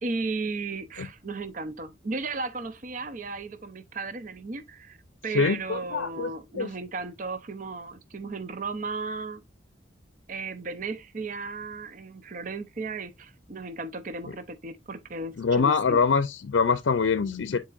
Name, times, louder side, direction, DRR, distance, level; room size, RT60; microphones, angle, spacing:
voice 1, 0.0-5.0 5.2-9.4 10.3-16.0, right 3 dB, 45° right, 0.6 m, -35 dB
voice 2, 5.3-6.7 15.4-17.6, left 5 dB, 80° left, 0.5 m, -24 dB
10.0 x 4.2 x 2.4 m
head